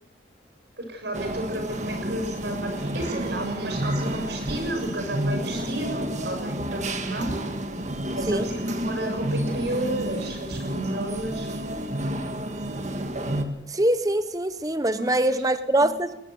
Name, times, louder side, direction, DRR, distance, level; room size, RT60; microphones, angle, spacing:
voice 1, 0.8-7.3 8.1-11.5 15.0-15.2 15.8-15.9, right 1 dB, 65° right, 6.8 m, -32 dB
sound 1, 1.1-13.4, right 1 dB, 40° right, 1.7 m, -30 dB
voice 2, 13.7-16.2, right 1 dB, 20° right, 1.0 m, -23 dB
21.0 x 17.5 x 7.8 m
head